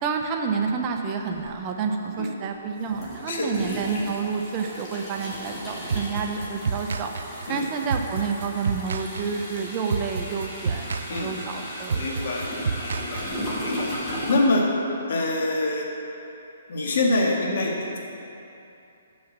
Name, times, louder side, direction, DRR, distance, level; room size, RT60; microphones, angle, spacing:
voice 1, 0.0-7.1 7.5-12.3, right 5 dB, 25° right, 3 dB, 0.6 m, -29 dB
sound 1, 1.3-1.4 2.8-14.3, equal, 15° left, 1.9 m, -35 dB
sound 2, 5.9-13.7, right 5 dB, 75° right, 0.3 m, -30 dB
voice 2, 12.0-12.5 12.8-13.3 13.6-13.9 14.3-14.7 15.1-15.9 16.7-18.0, left 2 dB, 60° left, -1 dB, 1.7 m, -25 dB
7.0 x 6.3 x 7.3 m, 2.8 s
hypercardioid pair, 160°, 0 cm